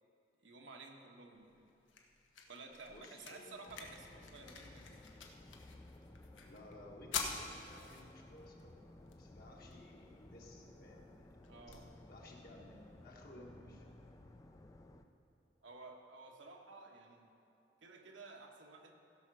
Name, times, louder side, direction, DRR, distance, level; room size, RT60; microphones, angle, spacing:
voice 1, 0.4-1.6 2.5-5.0 11.5-11.9 15.6-17.3 17.8-18.9, right 3 dB, 75° right, 1 dB, 1.3 m, -54 dB
sound 1, 1.3-13.3, left 5 dB, 85° left, 1.1 m, -49 dB
voice 2, 2.9-3.8 6.4-8.8 9.1-11.4 11.7-11.8 12.1-13.8, left 1 dB, 50° left, -1 dB, 1.6 m, -57 dB
sound 2, 3.7-15.1, left 1 dB, 20° left, 0.5 m, -57 dB
15.5 x 5.8 x 6.3 m, 2.8 s
head